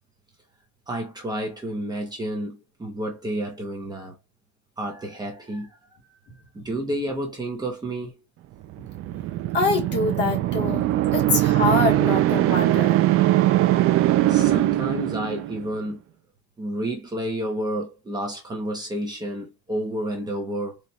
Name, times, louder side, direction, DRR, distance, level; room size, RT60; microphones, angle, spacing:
voice 1, 0.9-4.2 4.8-5.8 6.1-6.2 6.5-8.2 14.3-16.0 16.6-20.8, right 1 dB, 15° right, 0.9 m, -30 dB
sound 1, 8.7-15.7, right 15 dB, 45° right, 0.4 m, -21 dB
voice 2, 9.4-13.0, left 3 dB, 35° left, 1.4 m, -25 dB
4.2 x 2.4 x 3.2 m
cardioid pair, 170°, 31 cm